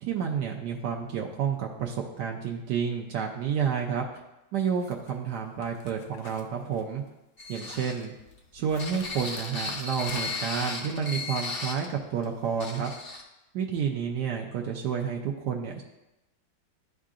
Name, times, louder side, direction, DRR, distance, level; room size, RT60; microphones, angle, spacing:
voice 1, 0.0-4.0 4.5-7.0 7.5-8.1 8.5-12.9 13.5-15.8, right 7 dB, 80° right, 0 dB, 1.2 m, -30 dB
sound 1, 4.8-5.1 5.6-7.1 7.4-8.1 8.7-10.6, left 5 dB, 80° left, 1.3 m, -46 dB
sound 2, 7.4-11.9 12.2-12.3 12.6-13.2, left 3 dB, 50° left, 0.7 m, -36 dB
11.0 x 3.7 x 2.4 m, 0.96 s
omnidirectional pair, 1.9 m